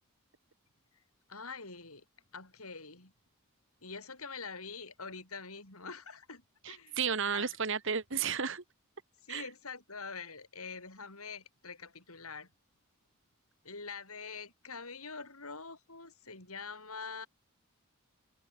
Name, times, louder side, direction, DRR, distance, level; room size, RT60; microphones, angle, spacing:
voice 1, 1.3-2.0 2.3-3.1 3.8-7.0 7.3-7.6 9.2-12.5 13.6-17.3, left 4 dB, 80° left, 7.5 m, -45 dB
voice 2, 6.6-8.6 9.3-9.4, right 6 dB, 60° right, 1.5 m, -33 dB
head